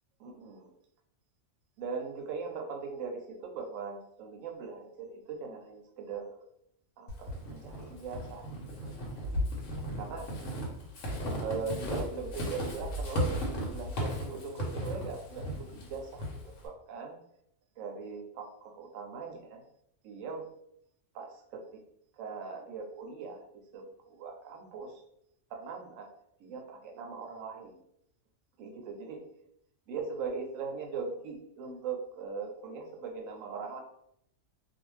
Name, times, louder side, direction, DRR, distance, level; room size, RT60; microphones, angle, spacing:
voice 1, 0.2-0.7 1.8-6.4 7.0-8.5 8.8-8.9 10.0-10.3 11.4-16.2 16.6-17.2 17.8-19.6 20.0-20.5 21.1-21.8 22.2-23.4 23.7-25.0 25.5-26.1 26.4-27.8 28.6-29.2 29.9-33.8, right 5 dB, 75° right, 3 dB, 0.9 m, -40 dB
Walk footsteps / Squeak, 7.1-16.7, equal, 75° left, 1.1 m, -36 dB
2.5 x 2.2 x 3.0 m, 0.74 s
omnidirectional pair, 1.4 m